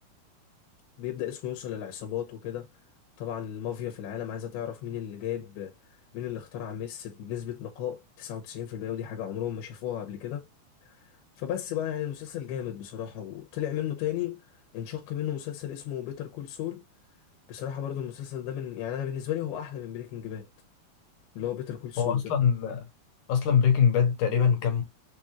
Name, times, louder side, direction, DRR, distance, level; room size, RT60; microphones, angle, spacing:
voice 1, 1.0-2.7 3.2-5.7 6.1-10.5 11.4-14.4 14.7-16.8 17.5-20.5 21.4-22.2, left 10 dB, 90° left, 2.8 m, -34 dB
voice 2, 22.0-22.9 23.3-24.8, left 7 dB, 65° left, 2.1 m, -23 dB
6.8 x 2.4 x 2.8 m
omnidirectional pair, 4.5 m